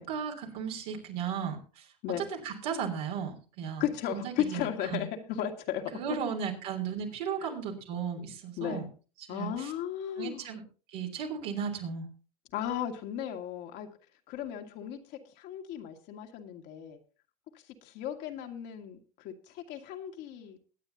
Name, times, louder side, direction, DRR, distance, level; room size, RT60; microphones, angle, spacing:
voice 1, 0.1-1.9 2.2-3.8 4.1-5.0 5.9-8.9 9.2-9.7 10.2-10.6 10.9-12.1, right 7 dB, 70° right, 2 dB, 3.4 m, -35 dB
voice 2, 3.8-6.2 7.4-7.5 8.6-8.9 9.3-10.5 12.5-13.9 14.3-17.0 17.8-20.6, left 10 dB, 60° left, 4 dB, 2.0 m, -35 dB
21.5 x 9.0 x 2.8 m, 0.37 s
hypercardioid pair, 85°, 20 cm